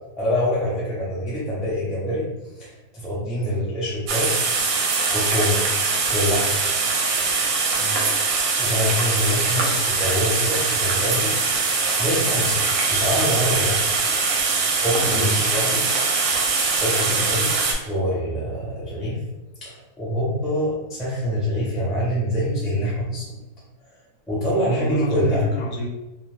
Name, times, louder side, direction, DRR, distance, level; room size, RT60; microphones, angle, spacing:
voice 1, 0.2-2.3 2.6-4.3 5.1-5.6 6.0-6.6 8.6-11.3 12.0-12.6 12.9-13.8 14.7-15.8 16.7-17.5 17.8-19.2 19.6-23.2 24.3-25.4, equal, ahead, -7 dB, 0.4 m, -25 dB
sound 1, 4.1-17.7, right 4 dB, 70° right, 0.9 m, -22 dB
voice 2, 7.8-8.1 15.0-15.5 24.7-25.9, right 1 dB, 80° left, 0 dB, 1.1 m, -28 dB
2.4 x 2.4 x 3.2 m, 1.0 s
omnidirectional pair, 1.7 m